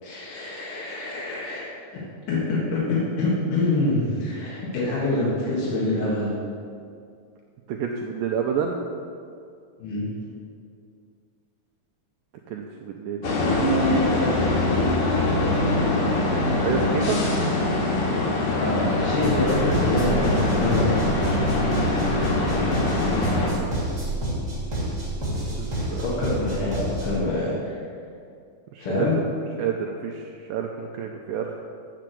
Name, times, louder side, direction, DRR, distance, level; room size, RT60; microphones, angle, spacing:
voice 1, 0.0-2.0 2.3-6.4 9.8-10.1 17.8-17.9 18.6-20.9 26.0-27.8 28.8-29.2, left 2 dB, 60° left, -7 dB, 3.0 m, -26 dB
voice 2, 7.7-8.8 12.5-13.6 16.6-17.2 25.6-26.1 28.7-29.2 29.6-31.6, right 7 dB, 85° right, 2 dB, 2.0 m, -29 dB
sound 1, 13.2-23.5, left 2 dB, 80° left, 3.7 m, -23 dB
sound 2, 19.2-27.2, right 1 dB, 20° right, 2.7 m, -29 dB
7.4 x 6.8 x 7.6 m, 2.3 s
omnidirectional pair, 4.5 m